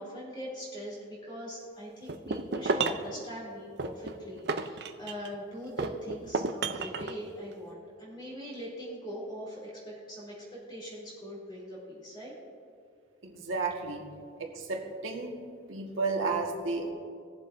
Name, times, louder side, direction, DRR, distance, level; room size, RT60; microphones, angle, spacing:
voice 1, 0.0-12.4, equal, 20° left, -6 dB, 3.0 m, -41 dB
sound 1, 2.1-3.1 3.8-5.3 5.8-7.2, right 4 dB, 55° right, 0.5 m, -32 dB
voice 2, 13.2-14.0 14.4-15.4 15.7-16.9, right 3 dB, 80° right, 1 dB, 1.6 m, -32 dB
20.0 x 7.4 x 2.6 m, 2.3 s
head